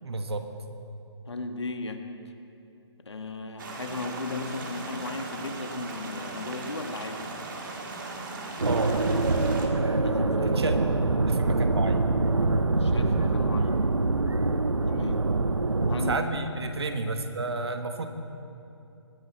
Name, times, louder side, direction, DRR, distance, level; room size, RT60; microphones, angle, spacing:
voice 1, 0.0-0.5 8.6-9.0 10.4-10.8 11.3-12.0 16.1-18.1, right 3 dB, 60° right, 7 dB, 1.3 m, -31 dB
voice 2, 1.3-2.0 3.0-7.3 10.0-10.8 12.8-13.8 14.9-15.2 15.9-16.2, left 3 dB, 70° left, 6 dB, 1.4 m, -36 dB
sound 1, 3.6-9.7, right 3 dB, 45° right, 1.8 m, -38 dB
sound 2, 8.6-16.2, right 3 dB, 90° right, 0.7 m, -25 dB
21.0 x 10.0 x 4.3 m, 2.7 s
figure-of-eight pair, 140°, 15 cm